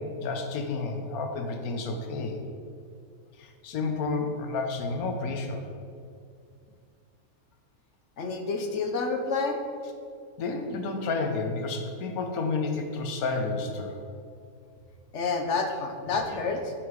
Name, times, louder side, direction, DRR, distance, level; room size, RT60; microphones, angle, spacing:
voice 1, 0.0-2.4 3.4-5.6 10.4-14.0, left 3 dB, 75° left, 4 dB, 1.3 m, -31 dB
voice 2, 8.2-9.6 15.1-16.7, left 4 dB, 55° left, 5 dB, 1.0 m, -29 dB
9.0 x 6.0 x 4.8 m, 2.3 s
omnidirectional pair, 1.6 m